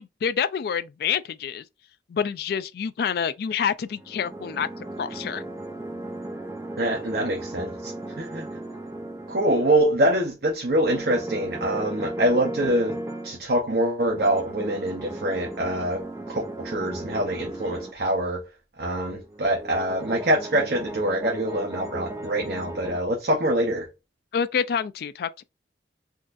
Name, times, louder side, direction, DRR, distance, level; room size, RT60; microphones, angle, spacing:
voice 1, 0.0-1.6 2.1-4.7 5.0-5.4 24.3-25.4, left 7 dB, 60° left, 0.3 m, -27 dB
sound 1, 3.9-10.0 10.8-13.4 14.1-17.9 19.2-23.0, right 1 dB, 15° right, 0.5 m, -36 dB
voice 2, 6.8-7.9 8.2-8.5 9.3-16.0 16.3-18.4 18.8-23.9, right 1 dB, 55° right, 0.7 m, -25 dB
3.8 x 2.5 x 2.5 m
head